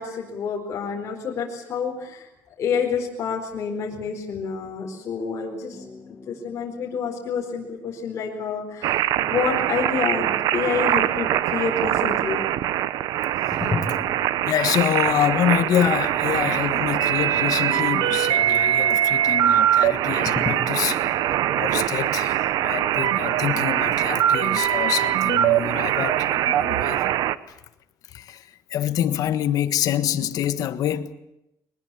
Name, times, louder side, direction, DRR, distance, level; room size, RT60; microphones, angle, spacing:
voice 1, 0.0-2.3 2.6-5.8 6.1-12.4, left 6 dB, 45° left, 4.5 m, -28 dB
sound 1, 5.7-9.0 13.5-16.6 16.9-17.0 20.3-23.6, left 3 dB, 20° left, 2.3 m, -37 dB
sound 2, 8.8-27.4, right 12 dB, 80° right, 0.9 m, -22 dB
voice 2, 13.5-14.0 14.5-21.0 21.5-27.1 28.1-31.1, left 11 dB, 65° left, 1.5 m, -26 dB
23.0 x 20.5 x 8.5 m
cardioid pair, 150°, 7 cm